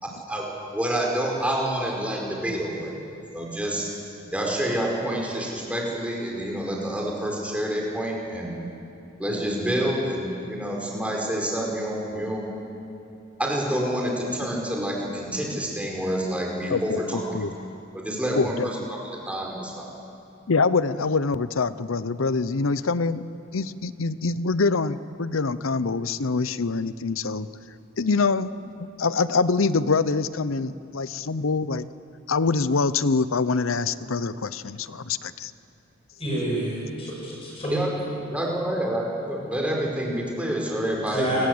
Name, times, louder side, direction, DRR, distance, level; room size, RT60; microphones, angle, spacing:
voice 1, 0.7-2.9 3.3-3.9 4.3-8.5 9.2-12.5 13.4-17.2 17.9-19.0 19.3-19.9 37.7-37.9 38.2-41.5, right 1 dB, 5° right, -2 dB, 4.8 m, -28 dB
voice 2, 16.7-17.5 18.4-18.7 20.5-23.2 23.5-27.5 28.0-28.5 28.8-31.9 32.3-35.5, left 4 dB, 85° left, 15 dB, 0.7 m, -25 dB
voice 3, 36.2-37.8 41.1-41.5, right 1 dB, 30° left, -4 dB, 7.9 m, -28 dB
29.0 x 20.5 x 8.0 m, 2.7 s
head